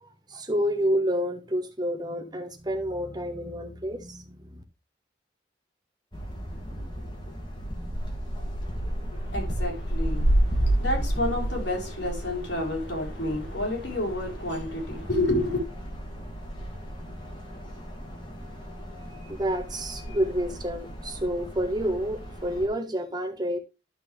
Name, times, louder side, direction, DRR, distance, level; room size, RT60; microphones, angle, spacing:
voice 1, 0.0-4.6 19.3-23.6, equal, 25° right, 1.3 m, -29 dB
sound 1, 6.1-22.7, right 1 dB, 25° left, 2.4 m, -32 dB
voice 2, 9.1-15.6, left 1 dB, 75° left, 3.8 m, -30 dB
12.0 x 6.3 x 3.3 m
head